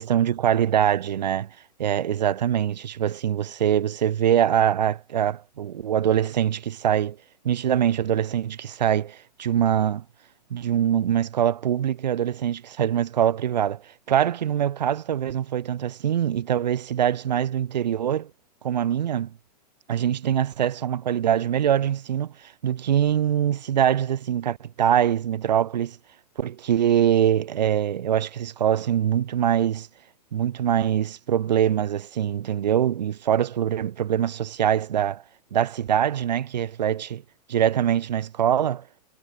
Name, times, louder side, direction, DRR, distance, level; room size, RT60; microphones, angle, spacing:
voice 1, 0.0-1.5 1.8-7.2 7.4-10.0 10.5-18.3 18.6-19.3 19.9-26.0 26.4-29.9 30.3-35.2 35.5-37.2 37.5-38.9, right 10 dB, 85° right, 4.0 m, -23 dB
supercardioid pair, 170°, 21 cm